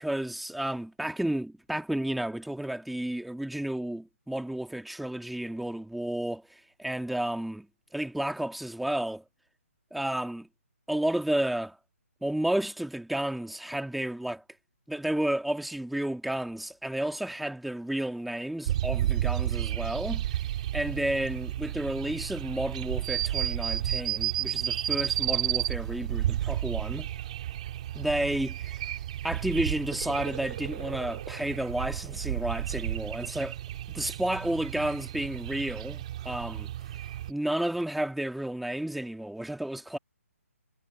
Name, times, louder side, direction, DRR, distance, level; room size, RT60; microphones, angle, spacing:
voice 1, 0.0-7.7 7.9-9.2 9.9-10.5 10.9-11.8 12.2-14.4 14.9-20.2 20.7-27.1 27.9-28.9 29.2-33.6 33.9-36.7 37.3-40.0, right 1 dB, ahead, 1.5 m, -31 dB
sound 1, 18.7-37.3, right 12 dB, 30° right, 2.5 m, -32 dB
hypercardioid pair, 170°, 8 cm